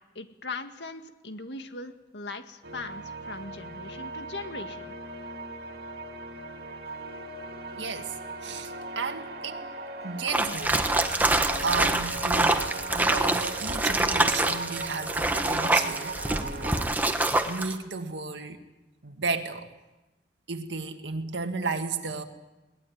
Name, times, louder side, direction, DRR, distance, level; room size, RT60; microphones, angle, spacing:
voice 1, 0.2-4.9, left 3 dB, 75° left, 7 dB, 1.9 m, -39 dB
sound 1, 2.6-16.9, right 2 dB, 60° right, 2.5 m, -38 dB
voice 2, 7.7-8.2 8.4-9.6 10.0-10.8 11.2-16.9 17.4-18.6 19.0-19.7 20.5-22.2, right 4 dB, 85° right, 5 dB, 1.9 m, -34 dB
sound 2, 10.3-17.7, right 2 dB, 10° right, 1.4 m, -26 dB
21.5 x 19.5 x 9.5 m, 1.1 s
head